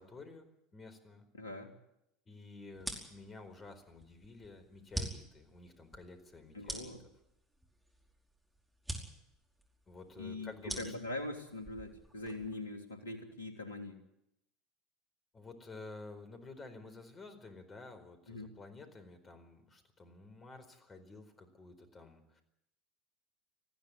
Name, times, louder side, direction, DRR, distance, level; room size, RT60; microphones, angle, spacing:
voice 1, 0.0-1.3 2.3-6.9 9.9-10.9 15.3-22.4, left 3 dB, 25° left, 8 dB, 4.4 m, -51 dB
voice 2, 1.3-1.7 6.5-7.0 10.2-14.0 18.3-18.5, left 2 dB, 75° left, 5 dB, 3.3 m, -42 dB
sound 1, 2.7-12.6, right 1 dB, 5° right, 4.9 m, -46 dB
20.0 x 15.0 x 9.8 m, 0.83 s
figure-of-eight pair, 75°, 0 cm